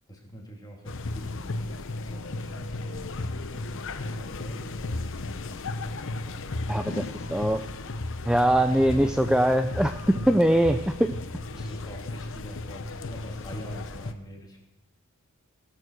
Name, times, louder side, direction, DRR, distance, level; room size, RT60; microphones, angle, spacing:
voice 1, 0.1-5.8 6.2-7.1 8.9-9.2 10.1-10.2 11.5-14.6, right 1 dB, 20° left, -1 dB, 3.0 m, -46 dB
sound 1, 0.9-14.1, left 2 dB, 60° left, 0.8 m, -35 dB
voice 2, 6.7-7.0 7.3-7.6 8.3-10.0 10.3-11.1, right 1 dB, 5° right, 8 dB, 0.4 m, -22 dB
17.5 x 7.6 x 6.5 m, 0.94 s
head